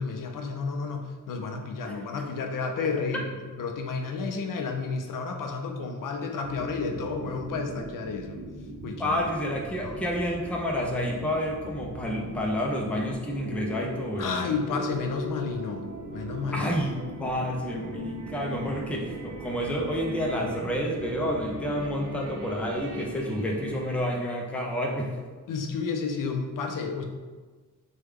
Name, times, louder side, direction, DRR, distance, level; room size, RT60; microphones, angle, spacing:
voice 1, 0.0-3.3 3.6-8.4 8.8-9.2 9.8-10.0 14.2-15.8 16.1-16.7 25.5-27.0, left 4 dB, 80° left, 4 dB, 0.5 m, -31 dB
sound 1, 6.4-24.0, right 1 dB, 60° right, 0.5 m, -39 dB
voice 2, 9.0-14.4 16.5-25.2, equal, 5° left, -1 dB, 0.4 m, -29 dB
3.2 x 2.2 x 3.4 m, 1.4 s
wide cardioid pair, 140°, 32 cm